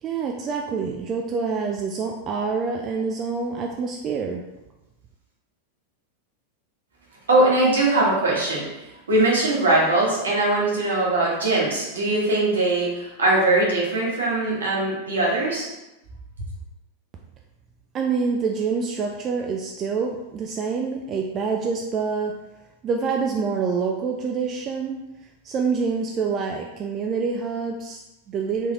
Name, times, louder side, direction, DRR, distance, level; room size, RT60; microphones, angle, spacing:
voice 1, 0.0-4.4 17.9-22.4 22.8-25.0 25.4-28.7, right 5 dB, 30° right, 1 dB, 0.3 m, -26 dB
voice 2, 7.3-8.6 9.1-15.7, right 2 dB, 70° right, -4 dB, 1.2 m, -21 dB
3.9 x 2.8 x 2.9 m, 0.98 s
figure-of-eight pair, 90°, 0 cm